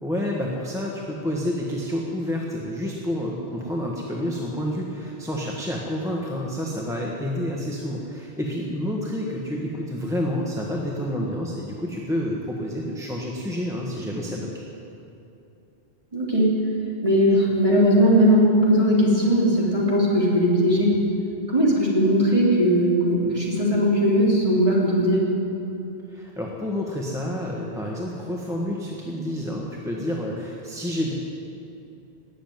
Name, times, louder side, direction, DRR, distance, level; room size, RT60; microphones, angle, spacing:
voice 1, 0.0-14.5 26.1-31.1, equal, 5° right, -3 dB, 1.4 m, -29 dB
voice 2, 16.1-16.5 17.0-21.0 21.5-25.2, equal, 30° right, -5 dB, 3.6 m, -19 dB
19.0 x 7.6 x 9.4 m, 2.8 s
omnidirectional pair, 1.2 m